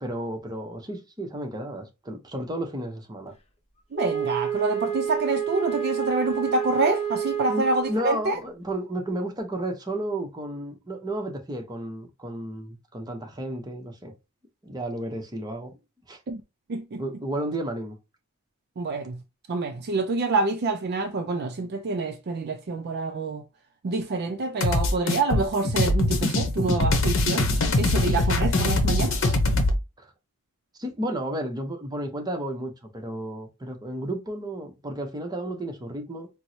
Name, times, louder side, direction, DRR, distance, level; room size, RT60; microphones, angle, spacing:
voice 1, 0.0-3.3 7.5-14.1 14.6-15.7 16.1-16.2 17.0-18.0 30.0-30.1 30.8-36.3, right 1 dB, 20° right, 0.7 m, -32 dB
Wind instrument woodwind instrument, 3.9-8.2, right 8 dB, 30° left, 0.7 m, -29 dB
voice 2, 3.9-8.4 16.3-16.4 16.7-17.0 18.8-19.2 19.5-23.4 23.8-29.3, right 3 dB, 50° right, 0.4 m, -27 dB
sound 1, 24.6-29.8, left 2 dB, 60° left, 0.8 m, -23 dB
4.5 x 2.0 x 2.7 m
head